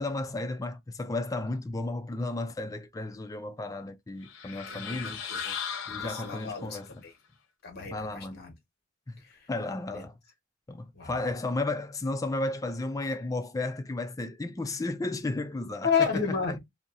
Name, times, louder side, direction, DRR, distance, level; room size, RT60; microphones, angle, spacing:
voice 1, 0.0-5.2 5.9-6.9 7.9-8.4 9.1-9.2 9.5-10.1 10.7-15.9, left 2 dB, 15° left, 0.3 m, -33 dB
sound 1, 4.2-6.9, left 7 dB, 85° left, 0.6 m, -37 dB
voice 2, 4.5-5.6 5.9-7.2 7.6-8.5 9.2-9.5 9.9-10.0 10.9-11.3 15.8-16.6, left 6 dB, 50° left, 1.2 m, -32 dB
2.8 x 2.7 x 2.5 m
head